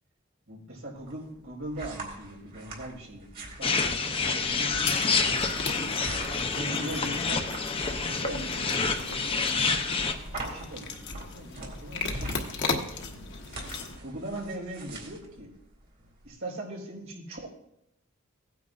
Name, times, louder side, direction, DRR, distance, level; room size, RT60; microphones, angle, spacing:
voice 1, 0.5-5.0 6.3-7.5 7.9-9.7 10.1-13.3 14.0-15.5 16.2-17.5, right 1 dB, 80° right, -4 dB, 4.7 m, -41 dB
sound 1, 1.0-16.3, right 1 dB, 50° right, 2.6 m, -43 dB
sound 2, 3.6-10.1, left 4 dB, 25° left, 0.8 m, -28 dB
sound 3, 4.8-14.0, left 4 dB, 60° left, 1.2 m, -37 dB
17.0 x 9.3 x 2.5 m, 0.77 s
head